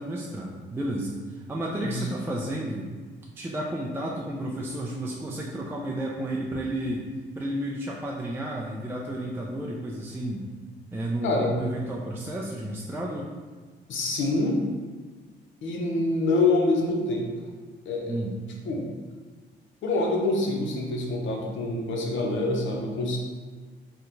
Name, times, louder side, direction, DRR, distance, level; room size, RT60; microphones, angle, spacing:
voice 1, 0.0-2.9 3.4-7.1 7.3-10.4 10.9-13.3 18.1-18.4, right 1 dB, 10° right, -3 dB, 0.3 m, -32 dB
voice 2, 11.2-11.5 13.9-14.6 15.6-17.3 17.9-18.2 18.6-18.9 19.8-23.2, left 2 dB, 75° left, 0 dB, 0.7 m, -26 dB
2.9 x 2.2 x 3.8 m, 1.4 s
cardioid pair, 90°, 20 cm